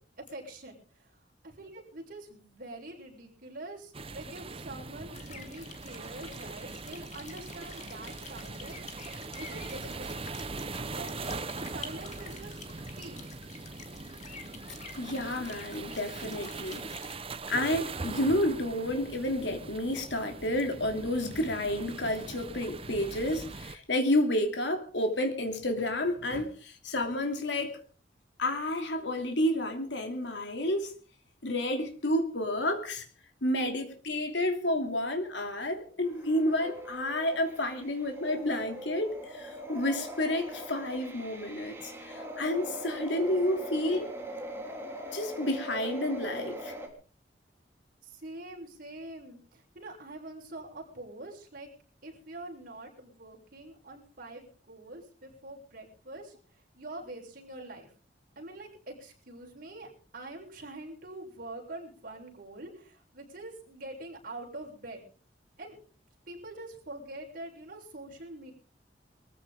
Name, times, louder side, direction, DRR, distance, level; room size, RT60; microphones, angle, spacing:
voice 1, 0.2-1.2 1.4-8.8 9.4-10.2 10.8-12.6 13.0-13.4 48.0-51.7 52.0-57.9 58.4-65.0 65.6-65.8 66.3-68.5, right 2 dB, 50° right, 7.1 m, -45 dB
sound 1, 3.9-23.7, right 3 dB, 30° right, 1.0 m, -41 dB
sound 2, 5.1-17.1, left 5 dB, 40° left, 2.6 m, -49 dB
voice 2, 15.0-16.9 17.5-27.8 28.4-30.9 31.4-33.0 33.4-44.1 45.1-46.7, left 1 dB, 85° left, 3.0 m, -30 dB
sound 3, 36.0-46.9, right 1 dB, 15° right, 3.6 m, -41 dB
23.0 x 15.0 x 3.8 m
head